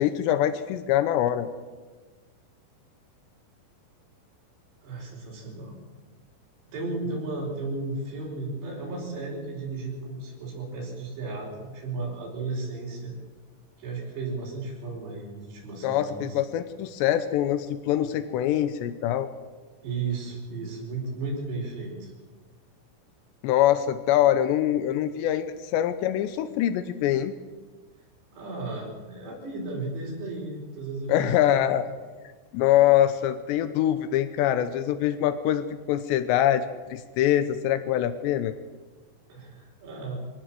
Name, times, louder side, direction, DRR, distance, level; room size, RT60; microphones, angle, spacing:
voice 1, 0.0-1.5 15.8-19.3 23.4-27.3 31.1-31.8 32.5-38.5, left 11 dB, 85° left, 11 dB, 3.1 m, -24 dB
voice 2, 4.8-5.8 6.6-13.1 13.8-16.4 19.8-22.1 28.3-31.3 39.3-40.2, right 3 dB, 75° right, -5 dB, 7.1 m, -34 dB
24.5 x 17.0 x 7.7 m, 1.4 s
omnidirectional pair, 4.9 m